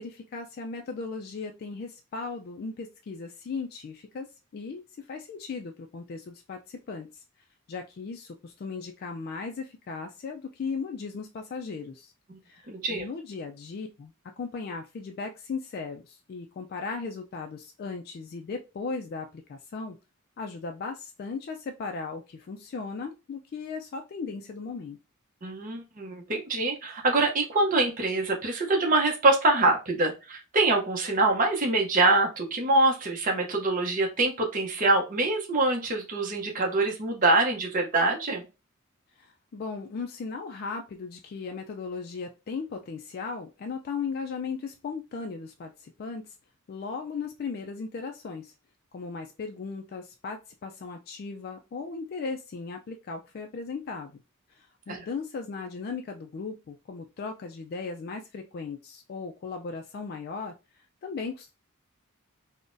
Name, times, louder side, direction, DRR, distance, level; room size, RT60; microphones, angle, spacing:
voice 1, 0.0-4.3 4.5-7.2 7.7-12.1 12.5-20.0 20.4-25.0 39.2-46.4 46.7-48.5 48.9-54.2 54.6-60.5 61.0-61.5, left 4 dB, 45° left, 3 dB, 0.3 m, -37 dB
voice 2, 12.7-13.1 25.4-38.4 54.9-55.0, right 2 dB, 40° right, 2 dB, 0.7 m, -24 dB
3.8 x 2.1 x 2.5 m, 0.28 s
head